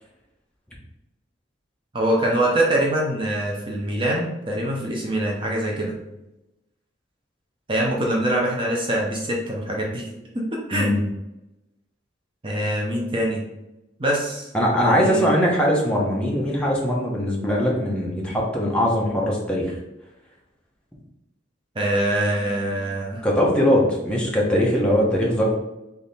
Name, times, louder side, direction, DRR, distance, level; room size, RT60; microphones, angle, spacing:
voice 1, 1.9-5.9 7.7-10.0 10.7-10.9 12.4-13.4 14.0-14.5 14.8-15.3 21.8-23.2, right 1 dB, 25° right, -2 dB, 0.7 m, -24 dB
voice 2, 10.7-11.0 14.5-19.7 23.2-25.5, equal, 5° left, -4 dB, 0.9 m, -21 dB
3.6 x 3.5 x 4.1 m, 0.95 s
head